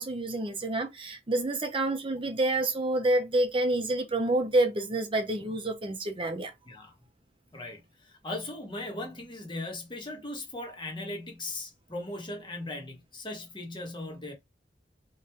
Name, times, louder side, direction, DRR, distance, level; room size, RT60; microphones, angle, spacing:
voice 1, 0.0-6.5, right 2 dB, 30° right, 0.8 m, -28 dB
voice 2, 7.5-14.3, left 2 dB, 25° left, 1.3 m, -38 dB
4.1 x 3.2 x 3.5 m
head